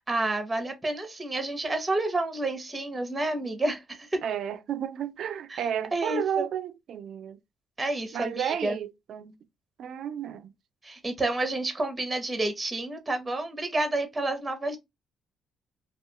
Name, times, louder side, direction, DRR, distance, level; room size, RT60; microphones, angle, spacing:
voice 1, 0.1-4.2 5.5-5.6 5.9-6.5 7.8-8.8 10.8-14.8, right 2 dB, 20° right, 0.7 m, -29 dB
voice 2, 4.2-7.4 8.1-9.4 9.8-10.5, right 9 dB, 70° right, 0.3 m, -32 dB
2.3 x 2.3 x 2.8 m
cardioid pair, 90°, 0 cm